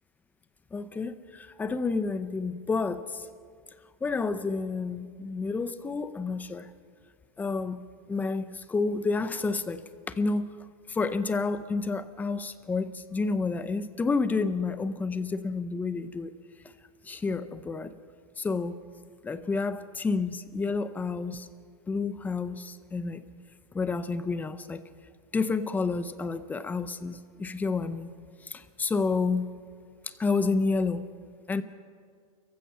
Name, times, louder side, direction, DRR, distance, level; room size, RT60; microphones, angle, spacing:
voice 1, 0.7-3.3 4.0-6.7 7.4-7.8 8.1-10.5 10.9-16.3 17.1-17.9 18.4-18.8 19.2-21.5 21.9-23.2 23.7-24.8 25.3-28.1 28.4-29.5 30.1-31.0 31.5-31.6, left 4 dB, 10° left, 0.7 m, -30 dB
29.5 x 15.5 x 5.8 m
supercardioid pair, 150°, 19 cm